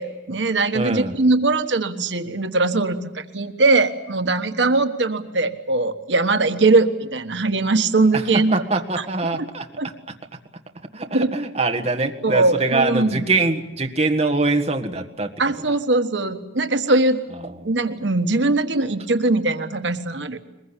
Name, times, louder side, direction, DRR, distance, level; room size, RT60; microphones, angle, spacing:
voice 1, 0.0-9.1 9.4-9.5 9.8-9.9 11.1-11.4 12.2-13.3 15.4-17.2 17.6-20.4, right 3 dB, 85° right, 8 dB, 1.4 m, -21 dB
voice 2, 0.7-1.2 8.1-8.2 8.5-9.7 10.9-15.3 17.4-17.7, right 3 dB, 35° right, 4 dB, 1.7 m, -23 dB
22.5 x 21.5 x 9.9 m, 0.97 s
head